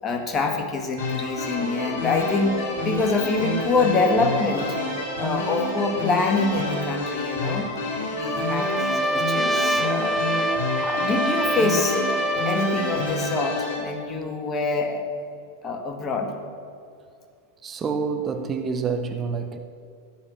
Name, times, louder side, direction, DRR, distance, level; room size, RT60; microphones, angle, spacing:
voice 1, 0.0-4.9 5.2-7.7 8.1-10.2 10.7-12.0 12.4-15.0 15.6-16.3, left 3 dB, 25° left, 1.9 m, -25 dB
sound 1, 1.0-13.8, left 2 dB, 50° left, 4.6 m, -28 dB
Trumpet, 8.3-13.1, right 1 dB, 5° right, 0.3 m, -26 dB
voice 2, 17.6-19.6, right 5 dB, 25° right, 1.0 m, -27 dB
15.5 x 10.0 x 6.4 m
figure-of-eight pair, 90°, 0 cm